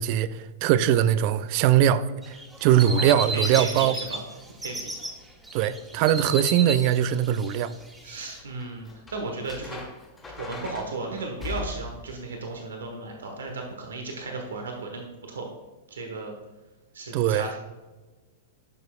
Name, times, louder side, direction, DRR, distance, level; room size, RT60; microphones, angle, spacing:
voice 1, 0.0-4.0 5.5-7.7 17.1-17.5, right 10 dB, 50° right, 0.4 m, -21 dB
sound 1, 2.2-4.2 4.5-5.1 5.4-8.4, right 1 dB, 10° right, 1.5 m, -33 dB
voice 2, 2.6-4.2 4.6-5.0 8.0-9.8 10.4-15.5 15.9-16.4 16.9-17.6, right 3 dB, 80° right, 1.2 m, -35 dB
sound 2, 8.4-12.1 14.3-14.5, left 4 dB, 15° left, 1.7 m, -39 dB
10.5 x 6.4 x 2.4 m
hypercardioid pair, 105°, 0 cm